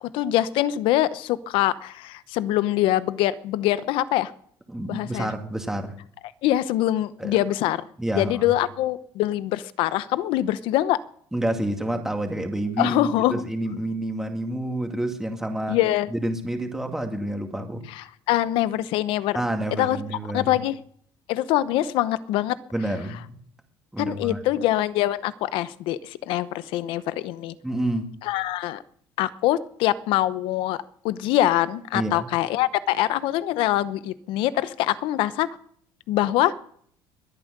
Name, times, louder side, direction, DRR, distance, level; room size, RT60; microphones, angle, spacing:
voice 1, 0.0-4.3 4.9-5.3 6.4-7.9 8.1-11.0 12.8-13.4 15.7-16.1 17.9-19.4 19.8-20.0 20.3-20.8 21.3-22.6 24.0-27.5 28.2-28.8 29.2-30.8 31.0-35.5 36.1-36.5, left 14 dB, 75° left, 16 dB, 0.8 m, -24 dB
voice 2, 4.7-6.0 7.2-7.4 8.0-8.5 11.3-15.8 16.1-17.8 19.3-20.5 22.7-23.3 23.9-24.4 27.6-28.1 31.9-32.3, right 1 dB, 5° right, 4 dB, 2.2 m, -28 dB
22.0 x 9.0 x 6.7 m, 0.63 s
cardioid pair, 120°, 9 cm